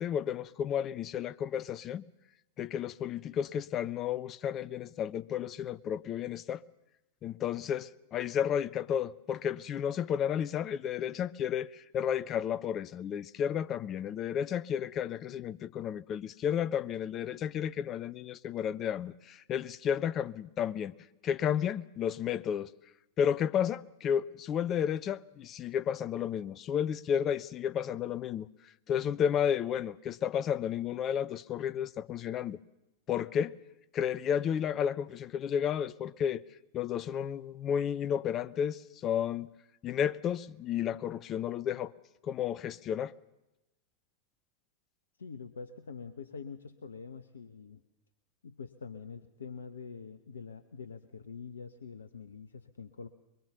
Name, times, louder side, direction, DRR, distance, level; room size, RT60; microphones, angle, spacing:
voice 1, 0.0-2.0 2.6-6.6 7.2-20.9 21.2-22.7 23.2-28.5 28.9-32.6 33.1-33.5 33.9-36.4 36.7-39.5 39.8-41.9 42.2-43.1, left 9 dB, 30° left, 0.8 m, -32 dB
voice 2, 45.2-47.8 48.4-53.1, left 5 dB, 70° left, 1.0 m, -45 dB
23.0 x 23.0 x 7.0 m
figure-of-eight pair, 90°, 0 cm